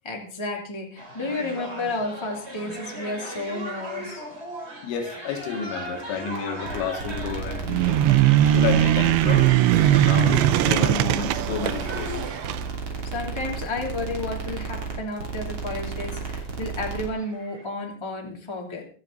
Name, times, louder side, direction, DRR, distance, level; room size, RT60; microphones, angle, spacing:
voice 1, 0.0-4.2 13.0-18.9, left 2 dB, 10° left, 2.3 m, -32 dB
sound 1, 1.0-17.6, right 1 dB, 15° right, 2.7 m, -39 dB
voice 2, 4.8-8.0 8.5-9.5 9.9-12.3 12.9-13.0, left 6 dB, 90° left, 4.3 m, -30 dB
sound 2, 6.6-17.1, right 4 dB, 35° right, 3.3 m, -33 dB
sound 3, 7.7-12.6, right 13 dB, 80° right, 3.0 m, -20 dB
25.0 x 8.9 x 4.0 m
omnidirectional pair, 5.2 m